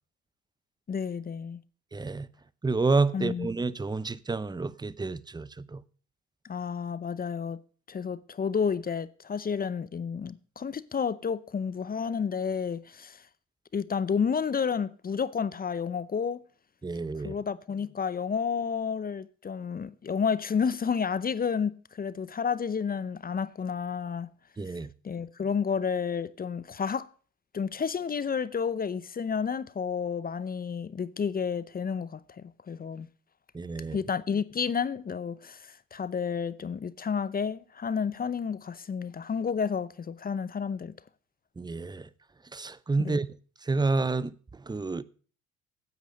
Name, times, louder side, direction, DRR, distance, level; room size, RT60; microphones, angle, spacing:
voice 1, 0.9-1.6 3.1-3.5 6.4-7.6 7.9-13.2 13.7-16.4 17.2-24.3 25.0-27.1 27.5-33.1 33.9-40.9 43.0-43.2, left 6 dB, 30° left, 0.6 m, -31 dB
voice 2, 1.9-2.3 2.6-5.8 16.8-17.4 24.6-24.9 33.5-34.0 41.6-42.1 42.5-43.3 43.6-45.0, right 3 dB, 15° right, 0.6 m, -29 dB
9.4 x 8.3 x 6.3 m
supercardioid pair, 75°, 30 cm